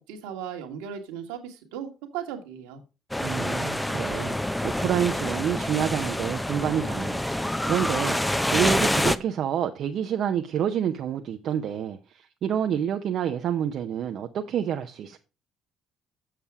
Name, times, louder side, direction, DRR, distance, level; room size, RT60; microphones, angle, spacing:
voice 1, 0.1-2.8, right 8 dB, 85° right, 1.6 m, -36 dB
sound 1, 3.1-9.2, left 1 dB, 5° left, 0.6 m, -27 dB
voice 2, 3.2-4.4 4.6-15.2, right 9 dB, 65° right, 0.7 m, -28 dB
7.5 x 6.8 x 4.7 m
supercardioid pair, 65°, 0 cm